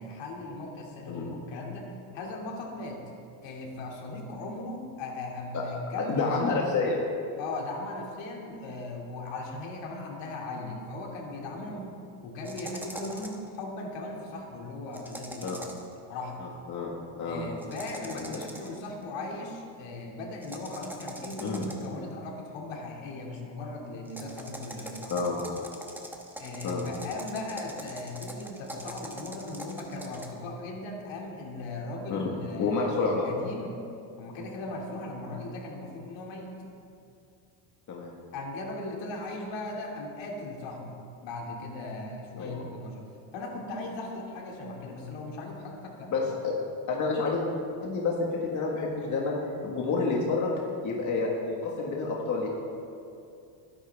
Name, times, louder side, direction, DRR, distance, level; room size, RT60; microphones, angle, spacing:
voice 1, 0.0-3.0 3.4-6.3 7.4-12.0 12.2-15.6 16.1-16.4 17.2-25.1 26.4-33.8 34.2-36.5 38.3-43.0 43.3-46.3, left 2 dB, 60° left, 0 dB, 2.7 m, -38 dB
voice 2, 6.0-7.0 15.4-15.6 16.7-17.4 18.1-18.4 21.4-21.6 25.1-25.4 26.6-26.8 32.1-32.3 32.6-33.3 37.9-38.1 42.4-42.6 46.1-46.6 46.9-47.4 47.8-50.5 50.8-52.5, left 4 dB, 35° left, -2 dB, 1.8 m, -29 dB
sound 1, 12.4-13.5 14.9-15.9 17.6-18.9 20.4-22.0 24.1-30.3, right 1 dB, 5° right, 1.3 m, -42 dB
20.5 x 11.0 x 3.6 m, 2.6 s
cardioid pair, 130°, 49 cm